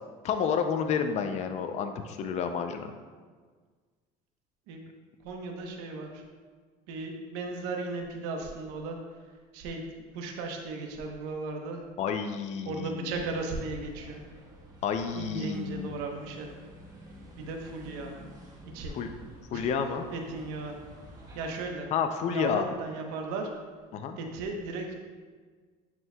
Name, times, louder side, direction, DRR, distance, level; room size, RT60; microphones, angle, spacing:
voice 1, 0.2-2.9 12.0-13.1 14.8-15.9 18.9-19.1 19.5-20.1 21.9-22.7 23.9-24.2, left 6 dB, 40° left, 7 dB, 0.4 m, -30 dB
voice 2, 5.2-6.2 6.9-9.0 9.5-9.9 10.1-11.8 12.6-14.2 15.1-16.5 17.4-18.1 18.7-18.9 19.5-19.7 20.1-20.8 21.3-21.9 22.3-23.5 24.2-24.9, right 3 dB, 85° right, 2 dB, 1.0 m, -36 dB
sound 1, 13.1-21.7, equal, 20° right, 1.2 m, -51 dB
9.4 x 4.5 x 2.2 m, 1.5 s
cardioid pair, 130°, 17 cm